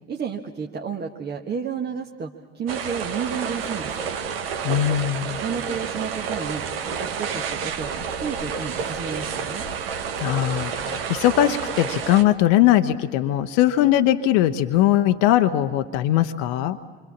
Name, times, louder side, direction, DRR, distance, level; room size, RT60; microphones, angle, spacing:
voice 1, 0.1-4.0 5.4-9.6, right 6 dB, 30° right, 2 dB, 1.3 m, -31 dB
sound 1, 2.7-12.2, right 6 dB, 70° right, 1.2 m, -30 dB
voice 2, 4.6-5.4 10.2-16.8, left 13 dB, 55° left, 8 dB, 0.8 m, -20 dB
29.0 x 25.0 x 7.2 m, 1.5 s
figure-of-eight pair, 55°, 31 cm